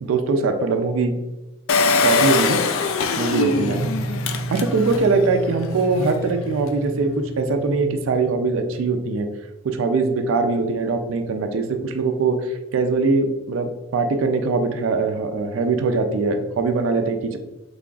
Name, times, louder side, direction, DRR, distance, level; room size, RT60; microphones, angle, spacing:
voice 1, 0.0-1.1 2.0-2.6 3.2-3.9 4.5-9.3 9.6-17.4, right 3 dB, 70° right, 6 dB, 0.3 m, -22 dB
Engine, 1.7-5.1 5.6-5.7 5.9-6.0, left 4 dB, 75° left, 0.3 m, -22 dB
sound 1, 3.5-8.6, right 2 dB, 25° left, 0.6 m, -31 dB
3.8 x 3.3 x 2.3 m, 1.1 s
head